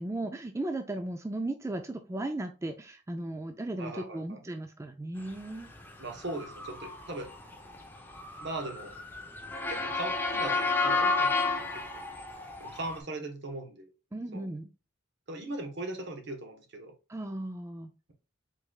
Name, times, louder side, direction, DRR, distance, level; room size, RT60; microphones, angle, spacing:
voice 1, 0.0-5.7 14.1-14.7 17.1-17.9, right 1 dB, 15° right, 7 dB, 0.3 m, -36 dB
voice 2, 3.8-4.4 6.0-7.3 8.4-8.9 9.7-11.3 11.6-12.0 12.6-13.9 14.3-14.5 15.3-16.9, right 2 dB, 60° right, 5 dB, 1.1 m, -39 dB
Motor vehicle (road) / Siren, 5.7-13.0, left 3 dB, 10° left, 0.7 m, -31 dB
4.9 x 4.0 x 2.3 m, 0.32 s
head